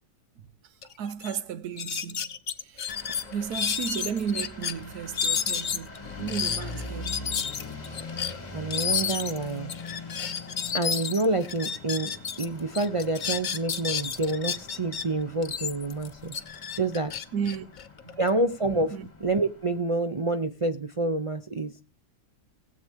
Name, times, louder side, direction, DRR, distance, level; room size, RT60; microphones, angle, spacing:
sound 1, 0.8-0.9 1.2-1.4 1.8-4.7 5.1-12.5 12.7-15.0 15.4-18.3, left 7 dB, 50° left, 0.5 m, -31 dB
voice 1, 1.0-2.3 2.6-3.0 3.3-7.1 17.3-17.6 18.0-18.2 18.9-19.1, right 7 dB, 70° right, 1.4 m, -33 dB
sound 2, 2.9-19.8, left 2 dB, 25° left, 2.1 m, -43 dB
voice 2, 8.5-9.7 10.7-16.4 16.8-17.2 18.2-21.7, right 2 dB, 50° right, 0.3 m, -28 dB
19.0 x 7.8 x 3.5 m
omnidirectional pair, 1.7 m